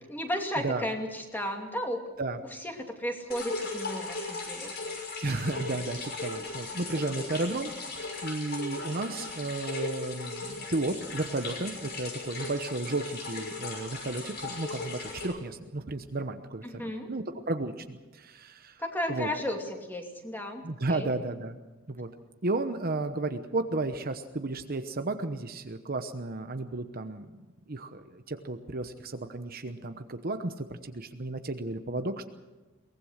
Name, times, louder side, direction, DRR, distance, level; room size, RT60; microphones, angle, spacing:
voice 1, 0.1-2.0 2.6-4.7 6.4-6.5 16.6-17.1 18.8-20.6 20.9-21.1, equal, 10° left, 2 dB, 2.6 m, -34 dB
sound 1, 3.3-15.3, left 3 dB, 45° left, 6.0 m, -37 dB
voice 2, 5.2-7.7 8.2-18.8 19.1-19.3 20.6-21.6 21.9-22.1 22.4-27.4 27.7-32.2, right 2 dB, 45° right, 7 dB, 1.0 m, -33 dB
23.0 x 19.0 x 6.5 m, 1.2 s
head